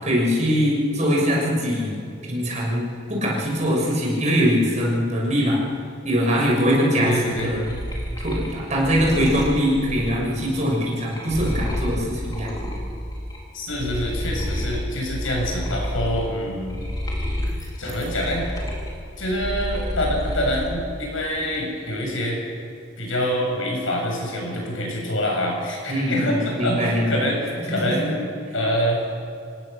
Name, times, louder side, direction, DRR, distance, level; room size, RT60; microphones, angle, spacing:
voice 1, 0.0-2.0 2.3-5.6 6.0-7.7 8.2-12.5 25.9-27.2 27.6-27.9, equal, 35° right, -3 dB, 6.7 m, -22 dB
voice 2, 6.9-7.5 13.5-16.8 17.8-18.5 19.2-22.4 23.0-29.0, equal, 85° left, 0 dB, 7.3 m, -26 dB
sound 1, 7.3-13.4 13.7-20.7 21.1-21.8, equal, 20° left, 4.0 m, -30 dB
27.5 x 17.0 x 6.8 m, 2.4 s
head